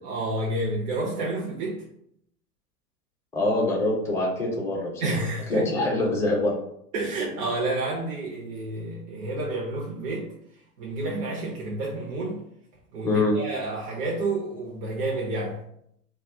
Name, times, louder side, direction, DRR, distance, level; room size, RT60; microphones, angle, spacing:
voice 1, 0.0-1.8 5.0-5.7 6.9-10.3 10.8-12.4 12.9-15.6, right 2 dB, 65° right, -2 dB, 0.8 m, -29 dB
voice 2, 3.3-5.1 5.5-6.5 13.0-13.3, left 2 dB, 5° left, -2 dB, 0.5 m, -24 dB
2.4 x 2.3 x 3.5 m, 0.73 s
hypercardioid pair, 110°, 47 cm